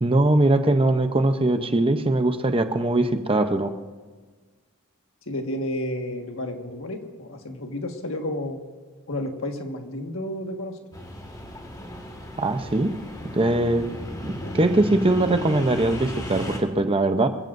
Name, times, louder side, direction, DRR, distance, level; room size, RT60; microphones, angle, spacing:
voice 1, 0.0-3.7 12.4-12.9 13.3-13.8 14.2-17.3, right 2 dB, 25° right, 7 dB, 0.7 m, -21 dB
voice 2, 5.3-8.6 9.1-10.8 14.4-14.6, left 1 dB, 65° left, 3 dB, 1.7 m, -31 dB
sound 1, 10.9-16.6, equal, 15° left, 1.9 m, -35 dB
26.0 x 15.5 x 2.6 m, 1.4 s
head